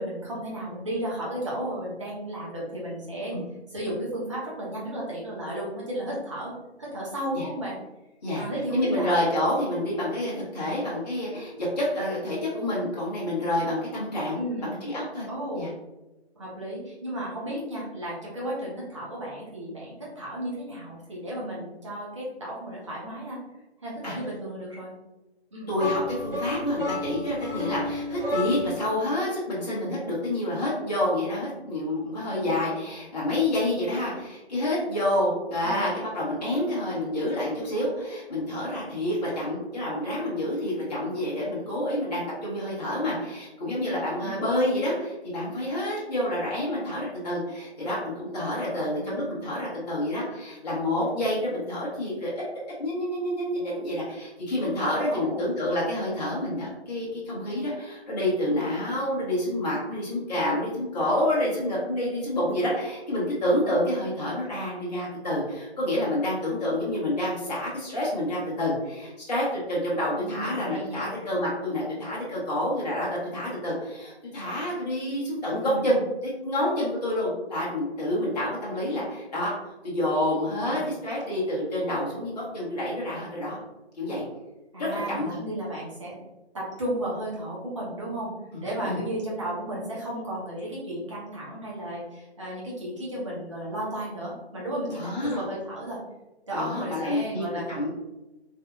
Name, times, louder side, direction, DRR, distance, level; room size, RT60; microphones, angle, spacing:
voice 1, 0.0-3.4 3.7-7.8 8.3-9.1 10.6-10.8 14.3-14.8 15.3-15.7 16.3-23.4 23.8-24.9 25.5-25.7 32.1-32.8 35.6-35.8 44.2-44.4 48.7-49.2 55.1-55.5 70.2-71.2 75.5-75.9 78.9-79.0 80.6-80.8 84.7-86.2 86.5-88.3 88.6-96.0 96.5-97.8, right 1 dB, 30° right, -5 dB, 0.8 m, -34 dB
voice 2, 8.7-15.3 15.5-15.7 24.0-24.2 25.7-52.3 52.8-79.5 79.8-83.6 84.0-84.2 84.8-85.4 88.5-88.6 88.8-89.0 94.9-95.5 96.5-97.9, left 1 dB, 40° left, -6 dB, 0.9 m, -28 dB
sound 1, 25.8-28.9, left 2 dB, 55° right, 1.0 m, -31 dB
3.5 x 2.4 x 2.3 m, 1.0 s
figure-of-eight pair, 150°, 33 cm